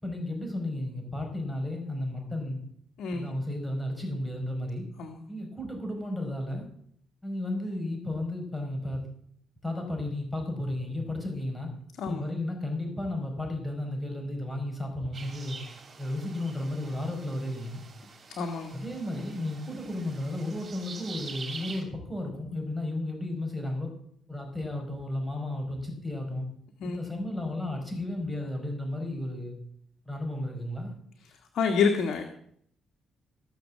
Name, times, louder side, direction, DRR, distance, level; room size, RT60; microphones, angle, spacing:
voice 1, 0.0-2.6 3.1-4.9 5.3-6.7 7.2-9.0 9.6-11.7 12.1-15.6 16.0-17.8 18.7-23.9 24.3-26.5 26.8-29.5 30.0-30.9, left 1 dB, 5° left, 2 dB, 5.0 m, -33 dB
sound 1, 15.1-21.8, right 4 dB, 45° right, 4.8 m, -45 dB
voice 2, 18.4-18.8 26.8-27.0 31.5-32.2, left 5 dB, 70° left, 4 dB, 1.6 m, -27 dB
16.5 x 6.7 x 7.5 m, 0.66 s
cardioid pair, 90°, 0 cm